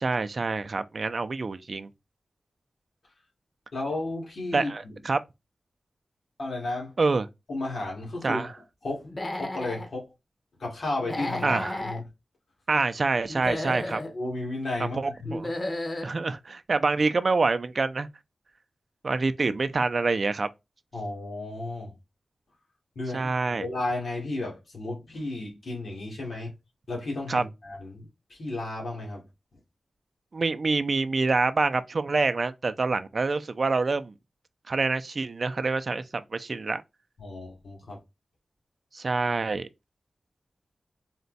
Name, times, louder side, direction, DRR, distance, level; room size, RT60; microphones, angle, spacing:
voice 1, 0.0-1.9 4.5-5.2 7.0-7.3 8.2-8.5 11.4-11.8 12.7-14.0 14.8-15.5 16.0-18.1 19.0-20.5 23.1-23.7 27.3-27.4 30.3-34.1 34.7-36.8 38.9-39.7, right 3 dB, 50° right, 0.4 m, -26 dB
voice 2, 3.7-4.7 6.4-6.9 7.5-8.4 8.8-10.1 10.6-12.0 14.1-15.4 15.9-16.0 20.9-21.9 23.0-26.5 26.9-29.2 37.2-38.0, left 2 dB, 75° left, 2.1 m, -33 dB
Human voice / Animal, 9.0-9.9 11.0-12.0 13.3-14.1 15.2-16.1, left 1 dB, 40° left, 0.9 m, -33 dB
4.2 x 2.3 x 4.0 m
wide cardioid pair, 90°, 0 cm